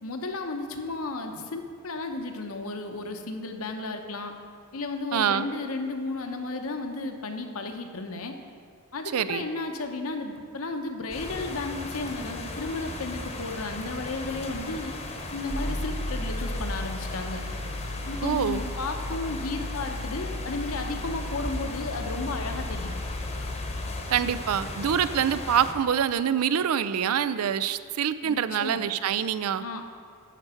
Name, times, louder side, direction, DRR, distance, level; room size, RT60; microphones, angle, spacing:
voice 1, 0.0-4.3 4.7-8.3 8.9-14.9 15.3-17.4 18.0-22.9 28.2-28.9 29.6-29.8, left 3 dB, 70° left, 5 dB, 0.9 m, -33 dB
voice 2, 5.1-5.5 9.1-9.4 18.2-18.6 24.1-29.6, right 8 dB, 80° right, 14 dB, 0.4 m, -25 dB
sound 1, 11.1-25.7, left 2 dB, 30° left, 0.9 m, -37 dB
sound 2, 15.5-24.0, left 1 dB, 10° left, 0.5 m, -35 dB
11.0 x 4.6 x 6.9 m, 2.3 s
head